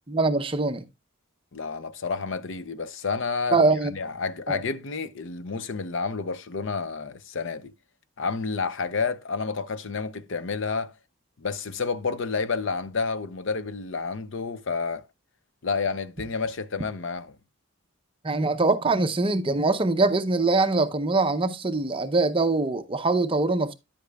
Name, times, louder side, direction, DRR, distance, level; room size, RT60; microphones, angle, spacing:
voice 1, 0.1-0.8 3.5-3.9 4.5-4.6 18.2-23.7, right 3 dB, 25° right, 0.6 m, -23 dB
voice 2, 1.5-3.6 3.9-7.7 8.2-10.9 11.4-15.0 15.6-17.4, left 4 dB, 60° left, 0.6 m, -30 dB
10.5 x 8.2 x 2.3 m
head